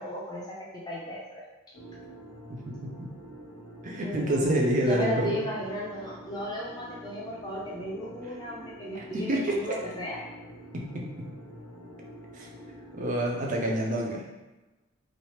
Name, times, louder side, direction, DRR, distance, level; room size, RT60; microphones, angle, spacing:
voice 1, 0.0-1.4 4.0-4.5 4.9-10.2, equal, 20° left, -5 dB, 0.5 m, -36 dB
sound 1, 1.7-13.7, equal, 70° left, 0.6 m, -47 dB
voice 2, 2.5-3.1 3.8-5.4 8.9-9.8 10.7-11.3 12.3-12.5 12.9-14.2, right 1 dB, 35° right, -1 dB, 0.4 m, -28 dB
3.1 x 2.0 x 2.8 m, 1.1 s
head